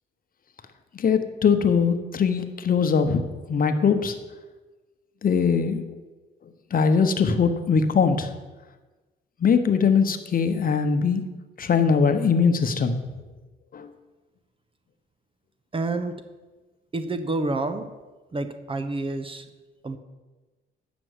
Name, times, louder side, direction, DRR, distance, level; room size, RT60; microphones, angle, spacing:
voice 1, 0.9-4.1 5.2-5.8 6.7-8.3 9.4-11.2 11.6-13.0 13.7-13.9, left 6 dB, 45° left, 8 dB, 1.0 m, -21 dB
voice 2, 15.7-16.2 16.9-17.9 18.3-19.5 19.8-20.0, right 2 dB, 25° right, 9 dB, 0.9 m, -28 dB
9.1 x 6.2 x 8.1 m, 1.2 s
cardioid pair, 90°, 20 cm